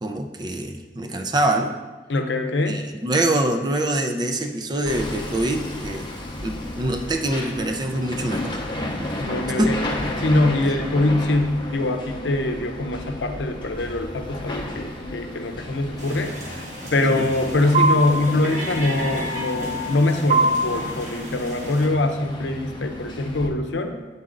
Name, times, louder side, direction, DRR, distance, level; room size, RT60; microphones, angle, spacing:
voice 1, 0.0-1.7 2.7-6.1 6.4-8.6 9.6-9.7 17.0-17.3, right 1 dB, 25° right, 4 dB, 0.4 m, -24 dB
voice 2, 2.1-2.8 9.2-9.8 10.2-16.4 16.9-24.0, left 2 dB, 80° left, 5 dB, 0.7 m, -23 dB
Hammer, 4.9-23.5, left 1 dB, 25° left, 0.7 m, -33 dB
sound 1, 16.0-21.9, right 2 dB, 40° right, 1.1 m, -26 dB
8.5 x 4.1 x 3.8 m, 1.3 s
head